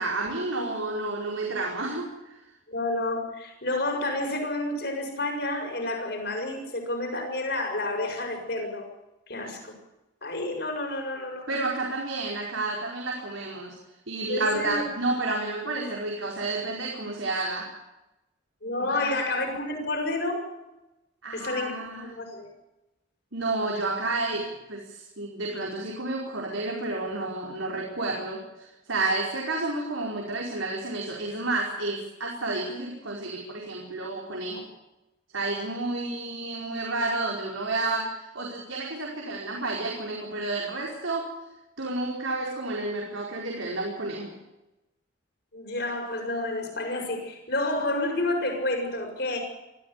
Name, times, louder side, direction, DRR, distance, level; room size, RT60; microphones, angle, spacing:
voice 1, 0.0-2.3 11.5-13.7 14.1-17.7 18.9-19.1 21.2-22.1 23.3-34.6 35.3-41.3 41.8-44.4, right 2 dB, 80° right, -1 dB, 5.0 m, -30 dB
voice 2, 2.7-8.8 9.3-9.7 10.2-11.5 14.3-14.8 18.6-20.4 21.3-22.5 45.5-49.4, left 2 dB, 55° left, 3 dB, 6.8 m, -30 dB
23.5 x 15.0 x 8.4 m, 0.96 s
head